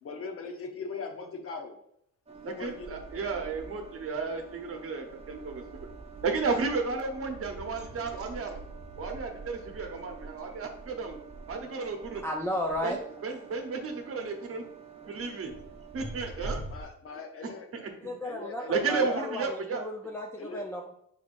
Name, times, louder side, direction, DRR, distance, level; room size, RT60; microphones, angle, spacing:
voice 1, 0.0-1.8 2.5-3.0 16.4-17.7 18.2-19.2 20.4-20.6, left 4 dB, 50° left, 4 dB, 0.8 m, -40 dB
sound 1, 2.3-16.9, right 3 dB, 20° right, 0.9 m, -45 dB
voice 2, 2.4-5.9 6.2-8.6 9.0-11.2 11.5-12.2 12.8-13.0 13.2-14.6 15.0-15.5 15.9-16.6 17.7-18.1 18.7-19.8, right 4 dB, 50° right, 4 dB, 0.9 m, -33 dB
voice 3, 12.2-13.0 18.0-20.9, left 1 dB, 10° left, -1 dB, 0.5 m, -34 dB
4.5 x 4.1 x 2.5 m, 0.73 s
cardioid pair, 90°, 30 cm